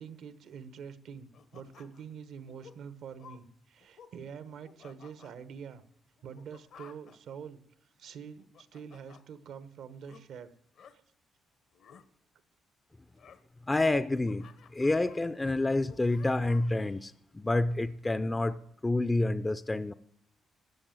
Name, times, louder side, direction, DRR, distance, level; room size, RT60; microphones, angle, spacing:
voice 1, 0.0-5.8 6.2-7.6 8.0-10.5 10.9-11.0, right 7 dB, 75° right, 13 dB, 1.0 m, -46 dB
sound 1, 1.3-2.1 2.5-2.8 3.2-3.4 3.8-4.1 4.5-5.3 6.2-7.2 8.2-9.2 10.0-10.2 10.7-10.9 11.7-12.0 13.2-13.4 13.9-15.2 15.7-16.8, left 7 dB, 70° left, 1.0 m, -54 dB
voice 2, 13.7-14.5 14.7-19.9, left 2 dB, 15° left, 12 dB, 0.4 m, -28 dB
13.5 x 6.9 x 9.0 m, 0.72 s
cardioid pair, 90°, 0 cm